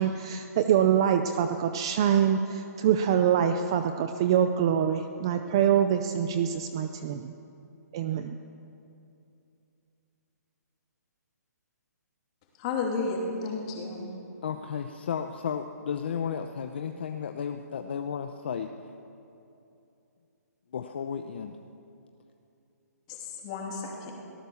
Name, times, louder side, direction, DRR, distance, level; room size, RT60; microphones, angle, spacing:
voice 1, 0.0-7.3 7.9-8.4, right 9 dB, 15° right, 8 dB, 0.4 m, -25 dB
voice 2, 12.6-14.1 23.1-23.2 23.4-24.1, left 4 dB, 20° left, 0 dB, 3.0 m, -32 dB
voice 3, 14.4-18.7 20.7-21.6, left 7 dB, 35° left, 6 dB, 0.8 m, -33 dB
23.0 x 18.0 x 7.1 m, 2.7 s
hypercardioid pair, 175°, 9 cm